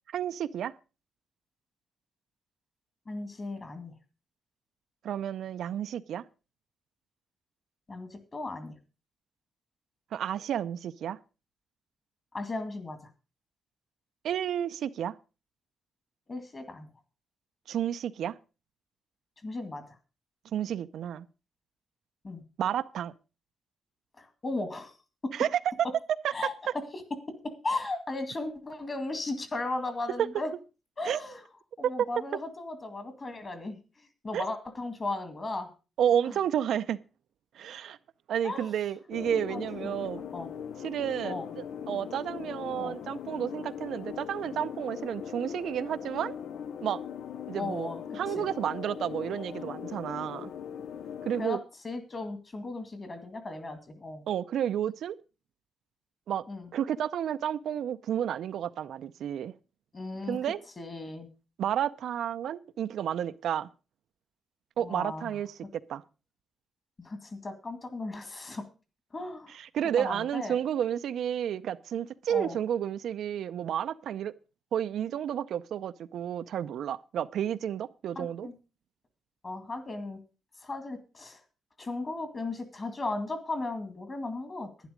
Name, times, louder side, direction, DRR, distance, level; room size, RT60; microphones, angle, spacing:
voice 1, 0.1-0.7 5.0-6.2 10.1-11.2 14.2-15.1 17.7-18.3 20.5-21.3 22.6-23.1 25.3-25.5 30.2-30.3 31.0-31.2 34.3-34.5 36.0-37.0 37.5-38.0 38.3-40.2 40.8-46.4 46.8-47.0 47.5-47.9 48.2-50.5 51.3-51.6 54.3-55.1 56.3-56.4 56.7-59.5 60.3-60.6 61.6-63.7 64.8-66.0 69.7-74.3 74.7-78.5, right 9 dB, 75° right, 0.5 m, -31 dB
voice 2, 3.1-3.9 7.9-8.7 12.3-13.1 16.3-16.9 19.4-20.0 22.2-22.4 24.2-25.0 25.2-25.3 26.3-26.5 26.9-27.0 27.3-27.4 27.6-30.5 31.0-31.4 31.8-35.7 36.3-36.4 38.4-38.8 39.5-40.0 40.3-40.5 41.2-41.5 42.8-43.0 47.5-48.0 48.4-48.5 51.4-54.2 56.5-56.7 59.9-60.4 60.8-61.3 64.8-65.4 67.0-68.7 69.1-69.6 70.0-70.6 72.3-72.6 78.2-78.5 79.4-80.2 80.6-81.4 81.8-84.7, left 2 dB, 30° left, 2.1 m, -36 dB
sound 1, 39.1-51.5, left 8 dB, 75° left, 0.5 m, -40 dB
11.5 x 10.5 x 5.1 m
cardioid pair, 150°, 0 cm